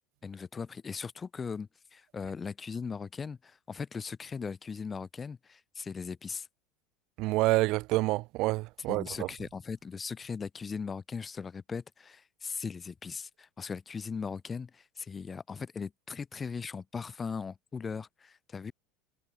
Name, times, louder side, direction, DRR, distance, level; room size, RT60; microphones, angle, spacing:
voice 1, 0.2-6.5 8.9-18.7, left 5 dB, 20° left, 2.3 m, -39 dB
voice 2, 7.2-9.3, right 20 dB, 60° right, 1.2 m, -28 dB
supercardioid pair, 120°, 0 cm